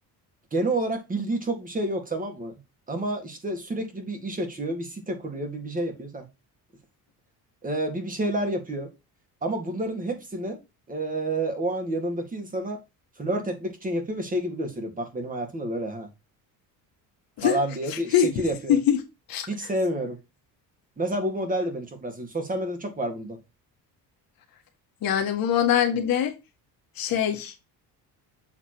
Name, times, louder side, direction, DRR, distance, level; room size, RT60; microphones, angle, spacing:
voice 1, 0.5-2.6 2.9-6.3 7.6-8.9 9.4-10.6 10.9-12.8 13.2-16.1 17.4-18.8 19.5-20.2 21.0-23.4, right 1 dB, 20° right, 1.8 m, -29 dB
voice 2, 17.9-18.3 18.7-19.0 19.3-19.5 25.0-26.3 27.0-27.5, left 9 dB, 60° left, 1.5 m, -23 dB
7.4 x 3.3 x 4.4 m
cardioid pair, 125°, 39 cm